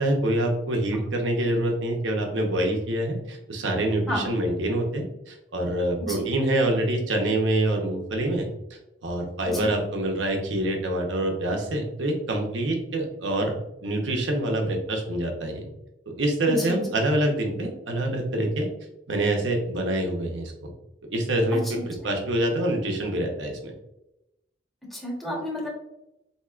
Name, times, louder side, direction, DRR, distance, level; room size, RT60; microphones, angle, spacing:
voice 1, 0.0-8.5 9.0-13.5 13.8-15.6 16.2-18.7 19.1-20.7 21.1-23.7, right 1 dB, 85° right, 2 dB, 0.8 m, -26 dB
voice 2, 16.5-16.9 21.5-21.7 24.9-25.7, equal, ahead, -4 dB, 0.9 m, -31 dB
4.3 x 2.9 x 2.4 m, 0.88 s
head